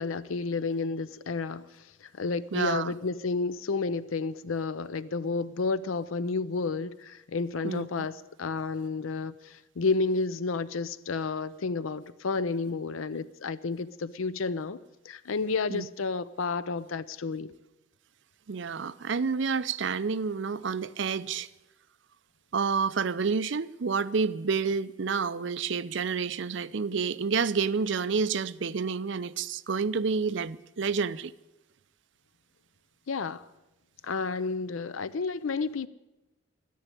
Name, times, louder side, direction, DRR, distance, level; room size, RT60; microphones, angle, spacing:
voice 1, 0.0-14.8 15.0-17.5 33.1-33.5 34.0-35.9, left 4 dB, 90° left, 0.6 m, -31 dB
voice 2, 2.5-2.9 7.6-7.9 15.7-15.9 18.5-21.5 22.5-31.3, right 5 dB, 65° right, 0.5 m, -29 dB
13.5 x 10.0 x 9.8 m
head